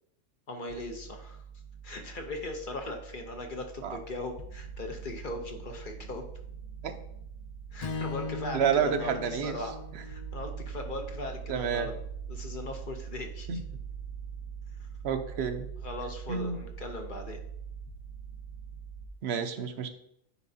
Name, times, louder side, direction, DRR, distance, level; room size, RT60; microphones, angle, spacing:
voice 1, 0.5-1.4 1.8-6.3 7.7-12.0 12.3-13.5 15.4-15.5 15.8-17.4, left 2 dB, 50° left, 4 dB, 0.7 m, -39 dB
sound 1, 0.7-19.1, right 7 dB, 85° right, 1.6 m, -43 dB
Strum, 7.8-12.1, left 4 dB, 75° left, 0.3 m, -41 dB
voice 2, 8.5-9.6 11.5-11.9 13.5-13.6 15.0-15.7 16.3-16.6 19.2-19.9, right 7 dB, 60° right, 8 dB, 0.8 m, -29 dB
9.7 x 4.7 x 2.7 m, 0.73 s
omnidirectional pair, 1.4 m